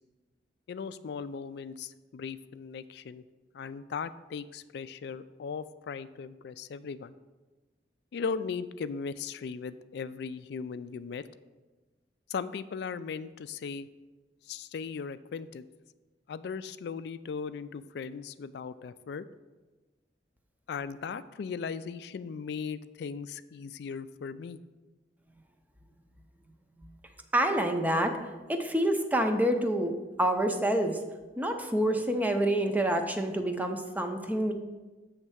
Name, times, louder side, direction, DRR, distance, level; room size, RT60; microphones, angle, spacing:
voice 1, 0.7-3.2 3.5-7.1 8.1-11.2 12.3-13.9 14.4-15.7 16.3-19.3 20.7-24.6, left 5 dB, 65° left, 13 dB, 0.3 m, -38 dB
voice 2, 27.3-28.2 28.5-29.9 30.2-31.0 31.4-34.5, right 1 dB, 10° right, 5 dB, 0.5 m, -27 dB
8.1 x 3.2 x 6.2 m, 1.2 s
head